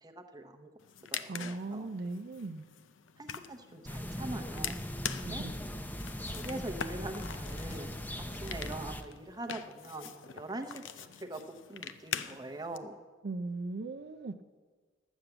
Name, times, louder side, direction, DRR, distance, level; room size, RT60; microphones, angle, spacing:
voice 1, 0.0-0.7 1.1-1.9 3.2-4.8 5.2-5.4 6.3-11.4 11.7-13.0, right 1 dB, 20° right, 6 dB, 0.8 m, -43 dB
sound 1, 0.8-12.8, left 8 dB, 85° left, 0.6 m, -44 dB
voice 2, 1.3-2.7 5.2-5.5 13.2-14.4, right 3 dB, 60° right, 7 dB, 0.5 m, -38 dB
sound 2, 3.8-9.0, equal, 10° left, 0.6 m, -39 dB
12.0 x 7.2 x 7.9 m, 1.4 s
head